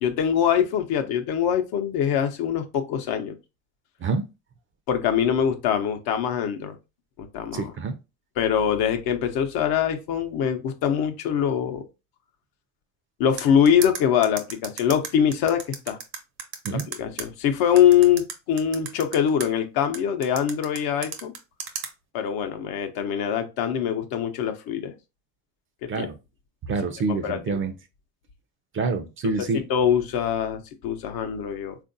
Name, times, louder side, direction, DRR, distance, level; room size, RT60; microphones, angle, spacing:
voice 1, 0.0-3.4 4.9-6.8 7.3-7.7 8.4-11.8 13.2-16.0 16.7-21.3 22.1-24.9 25.8-26.1 27.2-27.6 29.5-31.8, left 9 dB, 65° left, 0.7 m, -23 dB
voice 2, 7.5-7.9 16.6-16.9 25.9-26.2 26.7-27.7 28.7-29.6, right 4 dB, 30° right, 0.5 m, -27 dB
sound 1, 13.4-17.2 17.8-19.5 19.9-21.9, right 7 dB, 65° right, 0.8 m, -34 dB
3.5 x 2.5 x 2.6 m
supercardioid pair, 100°, 39 cm